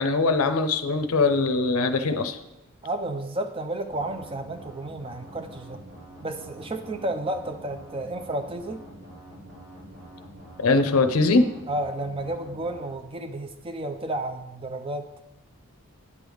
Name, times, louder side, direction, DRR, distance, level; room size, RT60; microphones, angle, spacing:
voice 1, 0.0-2.4 10.6-11.5, left 3 dB, 80° left, 9 dB, 0.6 m, -21 dB
voice 2, 2.8-5.8 6.2-8.8 11.7-15.1, right 1 dB, 25° right, 7 dB, 0.5 m, -32 dB
sound 1, 3.9-12.9, right 1 dB, 80° right, 2.7 m, -46 dB
9.6 x 3.5 x 6.3 m, 0.94 s
head